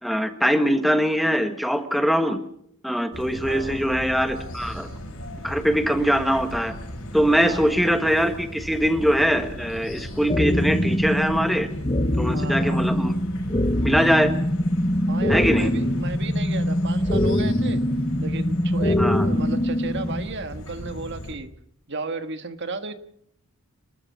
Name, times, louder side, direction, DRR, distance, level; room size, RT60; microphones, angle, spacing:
voice 1, 0.0-2.4 2.8-4.9 5.4-6.8 7.1-11.7 12.2-13.2 13.8-14.3 15.3-15.7 19.0-19.2, equal, ahead, 7 dB, 1.4 m, -22 dB
sound 1, 3.1-21.3, equal, 65° left, 6.6 m, -38 dB
voice 2, 3.5-3.8 7.4-7.8 12.3-12.8 15.1-17.8 18.2-21.5 21.9-22.9, right 3 dB, 50° right, 9 dB, 1.5 m, -34 dB
sound 2, 10.3-20.3, left 1 dB, 25° left, 1.2 m, -23 dB
29.0 x 13.0 x 7.2 m, 0.69 s
head